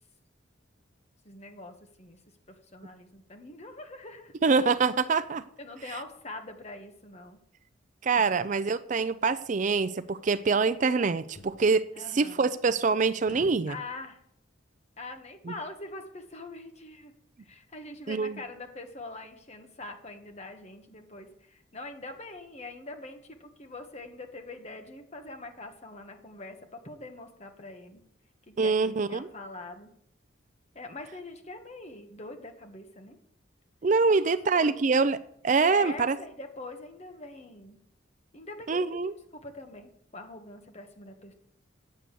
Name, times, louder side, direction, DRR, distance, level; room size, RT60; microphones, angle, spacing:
voice 1, 1.2-2.2 2.5-4.3 5.6-7.4 8.1-8.3 11.9-12.5 13.7-14.2 15.0-17.1 17.4-28.0 28.5-29.9 30.7-33.2 34.1-34.8 35.7-37.8 38.3-39.0 39.3-41.3, left 2 dB, 35° left, 5 dB, 1.4 m, -43 dB
voice 2, 4.4-5.4 8.0-11.9 12.1-13.8 15.5-15.6 18.1-18.4 28.6-29.3 33.8-35.2 35.4-36.2 38.7-39.1, right 4 dB, 40° right, 13 dB, 0.4 m, -25 dB
sound 1, 9.2-9.4 11.3-11.6 13.2-13.7, left 1 dB, 55° left, 1.1 m, -47 dB
9.5 x 7.7 x 6.8 m, 0.68 s
head